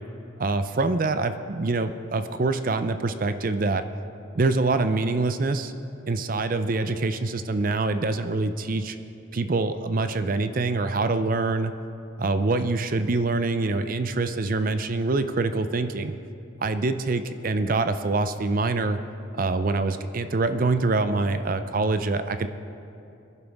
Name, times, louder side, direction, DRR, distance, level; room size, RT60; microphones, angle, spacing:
voice 1, 0.4-3.8 4.3-5.7 6.1-9.0 9.3-11.7 12.2-16.1 16.6-19.0 19.4-22.5, right 3 dB, 40° right, 10 dB, 0.5 m, -25 dB
22.5 x 11.0 x 3.5 m, 2.7 s
head